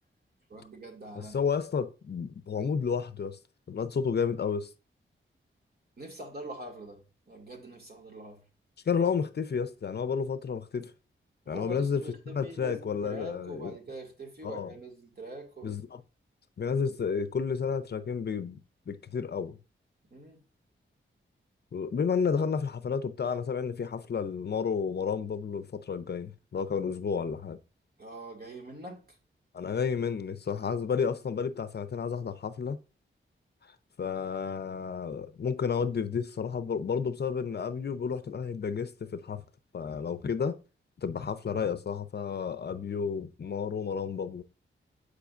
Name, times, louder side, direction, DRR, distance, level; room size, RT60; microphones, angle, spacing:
voice 1, 0.5-1.4 6.0-8.4 11.5-15.8 20.1-20.4 28.0-29.2, right 2 dB, 50° right, 2.0 m, -44 dB
voice 2, 1.2-3.4 3.7-4.7 8.9-10.9 11.5-12.0 12.3-13.7 14.4-14.7 15.6-16.0 16.6-18.6 18.9-19.6 21.7-27.6 29.5-32.8 34.0-39.4 39.7-40.6 41.0-44.4, left 6 dB, 50° left, 0.5 m, -31 dB
8.1 x 4.9 x 2.5 m
wide cardioid pair, 95°, 21 cm